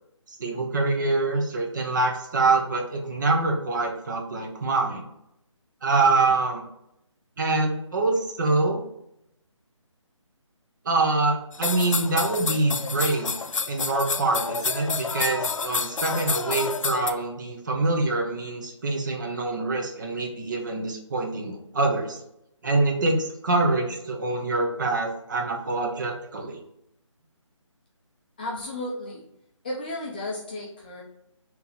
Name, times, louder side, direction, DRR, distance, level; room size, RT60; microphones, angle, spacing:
voice 1, 0.4-5.0 5.8-6.7 7.4-8.8 10.8-13.3 13.7-22.2 22.6-26.6, right 3 dB, 35° right, 2 dB, 0.7 m, -25 dB
sound 1, 11.5-17.1, left 5 dB, 75° left, 0.5 m, -29 dB
voice 2, 28.4-29.3 29.6-31.0, left 1 dB, 15° left, -4 dB, 0.5 m, -33 dB
3.3 x 2.9 x 4.0 m, 0.80 s
figure-of-eight pair, 160°, 16 cm